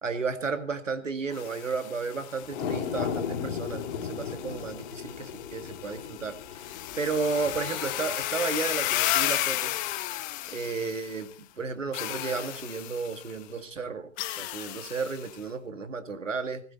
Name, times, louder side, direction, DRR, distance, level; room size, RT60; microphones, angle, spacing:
voice 1, 0.0-6.3 6.6-9.7 10.5-14.1 14.4-16.6, right 4 dB, 85° right, 9 dB, 2.3 m, -33 dB
sound 1, 1.3-11.3 11.9-13.4 14.2-15.4, left 15 dB, 20° left, 0.9 m, -34 dB
sound 2, 2.4-8.9 9.4-9.5, left 7 dB, 45° left, 3.2 m, -36 dB
17.5 x 15.5 x 4.4 m, 0.38 s
figure-of-eight pair, 125°, 37 cm